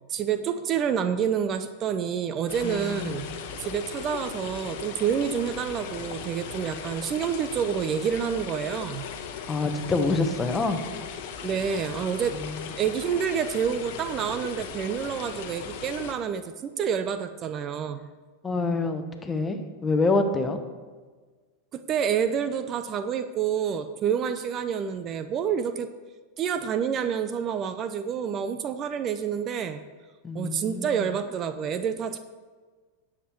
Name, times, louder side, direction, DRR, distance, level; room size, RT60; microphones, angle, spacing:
voice 1, 0.1-3.3 3.6-9.1 11.4-12.4 12.8-18.1 21.7-25.9 26.4-29.8 30.3-32.2, right 7 dB, 35° right, 10 dB, 0.6 m, -28 dB
sound 1, 2.5-16.1, left 7 dB, 60° left, 1.1 m, -38 dB
voice 2, 2.6-3.3 9.5-10.8 12.4-12.6 18.4-20.7 30.2-31.1, left 3 dB, 20° left, 7 dB, 1.1 m, -27 dB
10.0 x 7.4 x 4.6 m, 1.4 s
hypercardioid pair, 95°, 0 cm